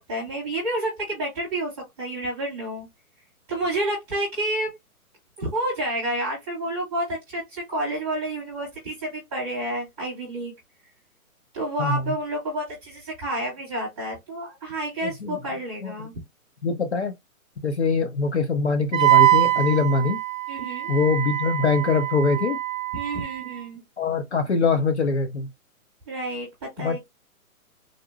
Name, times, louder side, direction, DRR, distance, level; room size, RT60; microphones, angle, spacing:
voice 1, 0.1-1.7 2.0-2.9 3.5-4.7 5.4-10.5 11.5-16.1 20.5-21.0 22.9-23.8 26.1-26.5 26.8-27.0, right 1 dB, 5° right, 1.0 m, -29 dB
voice 2, 11.8-12.1 15.0-15.4 15.8-16.1 16.6-17.1 17.6-20.2 20.9-22.6 24.0-25.5 26.8-27.0, left 4 dB, 50° left, 0.5 m, -23 dB
Wind instrument woodwind instrument, 18.9-23.6, right 16 dB, 60° right, 0.6 m, -23 dB
3.8 x 2.1 x 2.3 m
hypercardioid pair, 180°, 43 cm